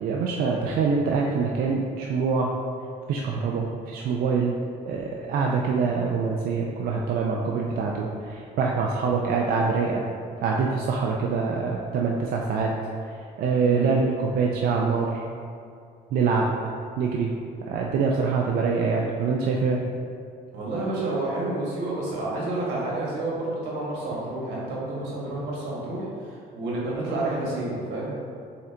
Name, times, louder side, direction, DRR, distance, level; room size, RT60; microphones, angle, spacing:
voice 1, 0.0-2.5 3.1-4.5 4.9-10.0 10.4-12.7 13.4-15.2 16.1-16.5 17.0-17.3 17.7-19.8, right 5 dB, 60° right, -1 dB, 0.4 m, -25 dB
voice 2, 13.6-13.9 20.5-28.1, right 2 dB, 85° right, -5 dB, 1.4 m, -30 dB
4.2 x 3.8 x 3.3 m, 2.4 s
cardioid pair, 110°, 17 cm